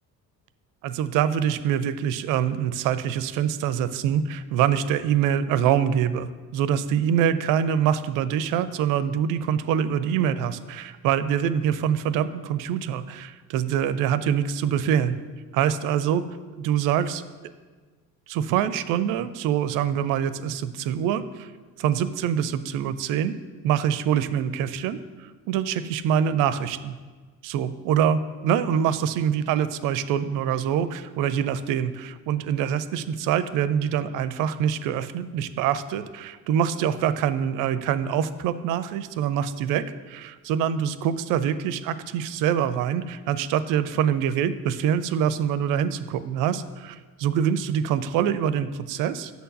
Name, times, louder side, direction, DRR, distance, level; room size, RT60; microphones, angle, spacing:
voice 1, 0.8-15.2 15.5-16.2 16.6-17.2 18.3-21.5 21.8-23.4 23.6-26.9 27.4-49.3, right 9 dB, 40° right, 14 dB, 0.5 m, -25 dB
6.6 x 4.4 x 6.4 m, 1.4 s
figure-of-eight pair, 50°, 50 cm